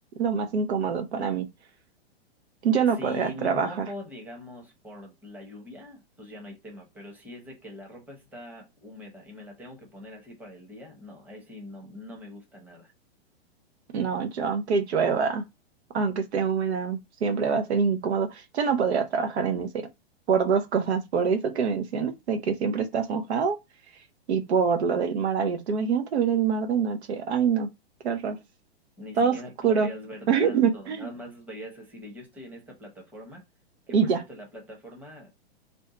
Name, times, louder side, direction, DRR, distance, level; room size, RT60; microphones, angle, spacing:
voice 1, 0.2-1.5 2.6-3.9 13.9-15.4 15.9-19.9 20.3-23.6 24.3-27.7 28.0-28.4 29.2-29.4 29.6-29.9 30.3-31.1 33.9-34.2, right 6 dB, 80° right, 0.8 m, -25 dB
voice 2, 2.9-12.9 29.0-33.4 33.9-35.3, left 1 dB, 5° right, 0.8 m, -43 dB
2.7 x 2.3 x 3.7 m
hypercardioid pair, 130°, 32 cm